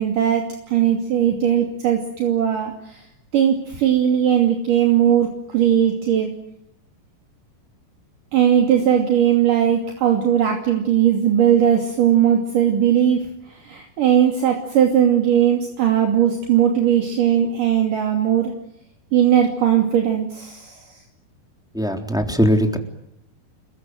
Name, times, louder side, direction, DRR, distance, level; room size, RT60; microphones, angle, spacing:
voice 1, 0.0-3.0 3.3-6.3 8.3-13.2 13.5-18.5 19.1-21.0, right 9 dB, 60° right, 2 dB, 4.2 m, -18 dB
voice 2, 21.7-22.8, equal, ahead, 4 dB, 3.0 m, -19 dB
29.5 x 23.0 x 7.9 m, 0.77 s
omnidirectional pair, 4.3 m